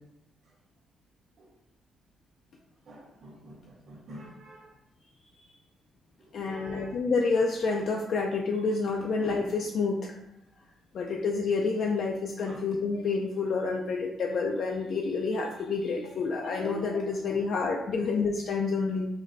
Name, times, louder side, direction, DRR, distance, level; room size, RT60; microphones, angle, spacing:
voice 1, 2.9-4.7 6.4-6.9 12.5-12.6, right 2 dB, 55° right, -3 dB, 1.3 m, -47 dB
voice 2, 6.3-10.1 10.9-19.1, left 4 dB, 50° left, 0 dB, 0.4 m, -28 dB
5.2 x 2.2 x 3.9 m, 0.83 s
cardioid pair, 155°, 0 cm